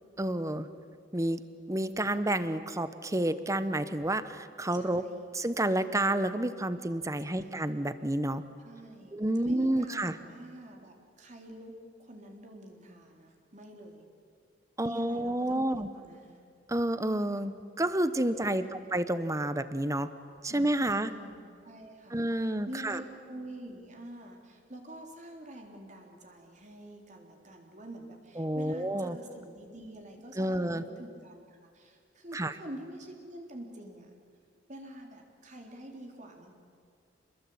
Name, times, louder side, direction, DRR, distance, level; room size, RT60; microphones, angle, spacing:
voice 1, 0.2-0.7 1.1-1.4 1.7-5.0 5.3-8.4 9.1-10.1 14.8-15.9 16.7-18.6 18.9-20.1 20.4-21.1 22.1-23.0 28.4-29.2 30.4-30.8 32.3-32.5, right 1 dB, 15° right, 13 dB, 1.1 m, -29 dB
voice 2, 4.7-5.3 7.2-7.6 8.6-11.7 12.0-14.0 14.8-16.4 18.3-18.9 20.5-34.1 34.7-36.5, right 1 dB, 40° right, 2 dB, 3.8 m, -47 dB
28.5 x 21.0 x 8.8 m, 2.3 s
head